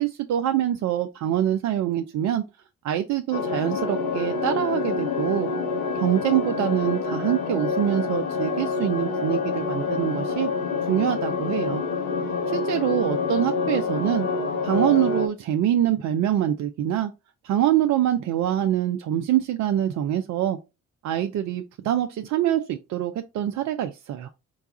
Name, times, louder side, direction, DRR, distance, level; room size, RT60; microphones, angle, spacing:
voice 1, 0.0-2.4 2.8-5.5 5.9-10.5 10.9-11.8 12.5-14.3 14.6-17.1 17.4-20.6 21.0-24.3, right 11 dB, 45° right, 0.5 m, -24 dB
sound 1, 3.3-15.3, left 4 dB, 75° left, 0.7 m, -27 dB
4.6 x 2.3 x 3.9 m
hypercardioid pair, 45°, 39 cm